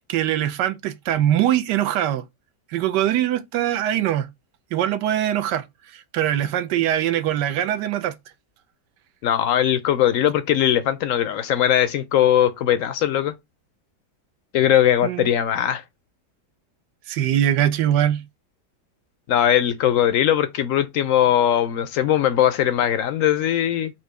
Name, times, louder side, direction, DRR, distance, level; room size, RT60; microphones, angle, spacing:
voice 1, 0.1-2.2 2.7-4.3 4.7-5.6 5.9-8.1 15.0-15.3 17.1-18.2, right 11 dB, 80° right, 1.2 m, -22 dB
voice 2, 9.2-13.3 14.5-15.8 19.3-23.9, left 10 dB, 75° left, 0.7 m, -20 dB
4.4 x 2.6 x 4.6 m
omnidirectional pair, 1.8 m